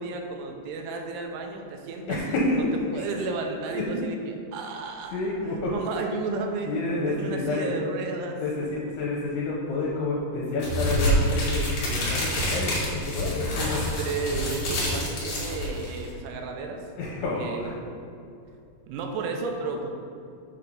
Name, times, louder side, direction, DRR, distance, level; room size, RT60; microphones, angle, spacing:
voice 1, 0.0-2.4 2.9-5.2 5.5-6.7 7.0-8.4 14.0-16.8 17.4-18.0 18.9-19.9, right 3 dB, 85° right, 2 dB, 2.7 m, -33 dB
voice 2, 2.1-2.6 2.9-3.1 3.7-3.8 5.1-6.1 6.7-7.7 8.4-13.8 17.0-17.7, left 2 dB, 80° left, -4 dB, 2.8 m, -29 dB
sound 1, 10.6-16.1, equal, 60° left, 3.0 m, -27 dB
7.4 x 3.3 x 5.3 m, 2.5 s
omnidirectional pair, 4.8 m